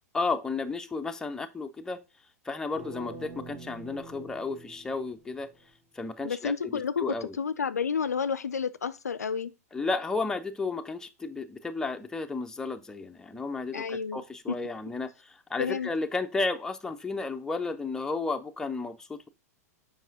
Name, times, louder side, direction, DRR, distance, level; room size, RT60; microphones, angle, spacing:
voice 1, 0.1-2.0 2.4-5.5 5.9-7.4 9.7-19.3, left 3 dB, 5° left, 0.6 m, -33 dB
sound 1, 2.7-5.7, right 2 dB, 15° right, 1.0 m, -45 dB
voice 2, 6.2-9.5 13.7-14.6 15.6-15.9, left 6 dB, 75° left, 0.4 m, -31 dB
7.3 x 5.2 x 2.7 m
figure-of-eight pair, 100°, 9 cm